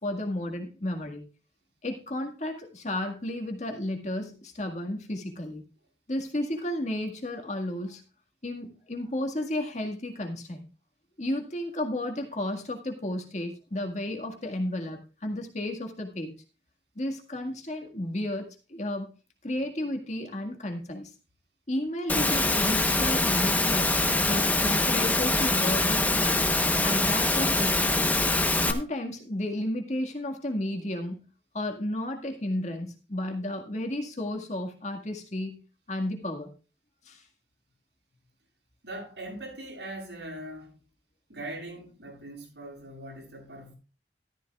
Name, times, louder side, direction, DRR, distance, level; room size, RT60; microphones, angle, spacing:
voice 1, 0.0-1.2 1.8-5.6 6.1-8.0 8.4-10.7 11.2-16.3 17.0-19.1 19.4-21.1 21.7-26.5 26.8-28.1 28.6-31.3 31.5-35.6 35.9-36.5 37.1-37.2, left 1 dB, 40° left, 1.9 m, -33 dB
Engine / Mechanisms, 22.1-28.7, left 2 dB, 10° left, 1.0 m, -24 dB
voice 2, 38.8-40.8 41.3-43.8, right 1 dB, 80° right, 7.9 m, -41 dB
13.5 x 13.5 x 2.4 m
head